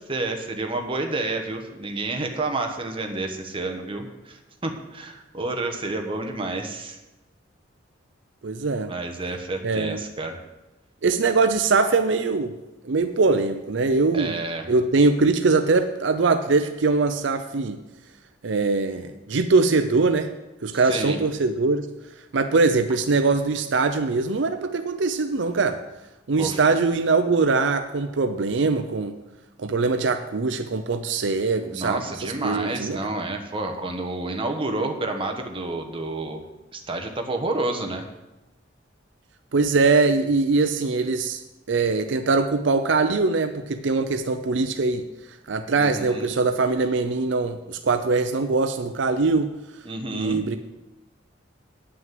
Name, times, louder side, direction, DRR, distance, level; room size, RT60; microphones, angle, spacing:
voice 1, 0.1-7.0 8.9-10.4 14.1-14.7 20.7-21.2 26.4-26.6 31.7-36.4 36.7-38.1 45.8-46.3 49.8-50.4, right 2 dB, 30° right, 4 dB, 1.1 m, -29 dB
voice 2, 8.4-8.9 9.6-10.0 11.0-12.6 12.8-14.4 14.7-17.8 18.4-20.3 20.6-21.9 22.3-25.8 26.3-29.2 29.6-33.0 39.5-41.4 41.7-45.1 45.5-49.5 50.1-50.6, right 3 dB, 70° right, 9 dB, 0.6 m, -22 dB
9.3 x 6.2 x 7.6 m, 1.0 s
head